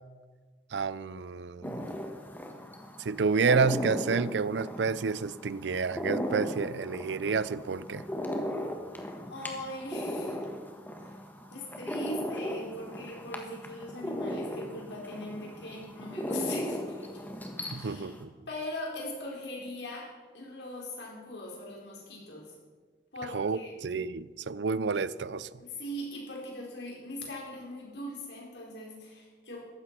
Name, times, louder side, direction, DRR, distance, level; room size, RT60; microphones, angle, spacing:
voice 1, 0.7-1.9 3.0-8.0 17.7-18.3 23.3-25.5, right 5 dB, 85° right, 18 dB, 0.5 m, -29 dB
sound 1, 1.6-18.2, equal, 10° left, 1.5 m, -37 dB
voice 2, 9.2-10.4 11.0-11.2 11.5-17.2 17.7-18.1 18.5-22.5 23.1-23.7 25.6-29.7, left 1 dB, 80° left, -2 dB, 4.6 m, -40 dB
15.0 x 11.5 x 6.1 m, 1.4 s
head